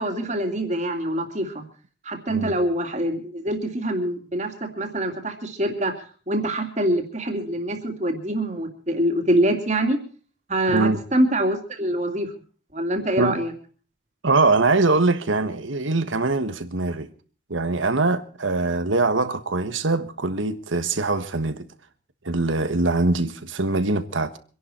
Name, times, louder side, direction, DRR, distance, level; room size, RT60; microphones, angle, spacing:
voice 1, 0.0-1.6 2.0-6.0 6.3-10.0 10.5-12.3 12.7-13.5, right 1 dB, 35° right, 2.6 m, -25 dB
voice 2, 10.7-11.0 13.2-13.4 14.2-17.1 17.5-21.7 22.2-24.4, right 3 dB, 80° right, 1.4 m, -23 dB
25.5 x 11.0 x 4.4 m
head